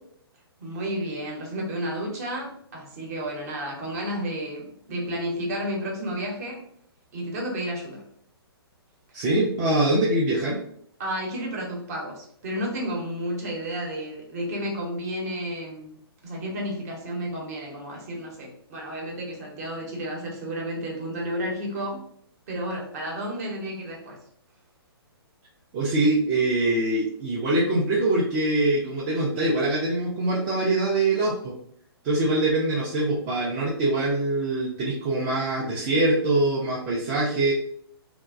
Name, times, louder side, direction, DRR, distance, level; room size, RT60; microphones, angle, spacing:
voice 1, 0.6-6.6 7.1-8.0 11.0-16.0 16.2-22.0 22.5-24.2, equal, 35° right, -1 dB, 0.8 m, -32 dB
voice 2, 9.1-10.6 25.7-31.5 32.0-37.5, right 2 dB, 20° right, -5 dB, 0.3 m, -23 dB
2.5 x 2.1 x 2.3 m, 0.65 s
figure-of-eight pair, 125°, 13 cm